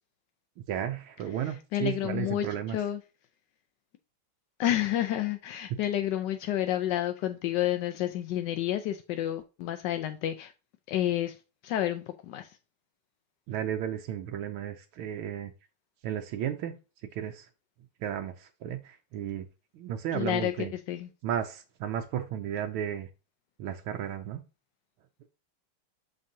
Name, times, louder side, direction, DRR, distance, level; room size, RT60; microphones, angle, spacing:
voice 1, 0.7-2.8 5.7-5.8 13.5-15.5 16.0-16.7 17.1-17.5 18.0-19.4 19.7-20.7 21.2-23.1 23.6-24.4, right 10 dB, 75° right, 1.5 m, -33 dB
voice 2, 1.4-3.0 4.6-10.5 10.9-11.4 11.6-12.5 20.1-21.1, left 12 dB, 75° left, 1.0 m, -30 dB
6.5 x 6.2 x 2.7 m
omnidirectional pair, 2.4 m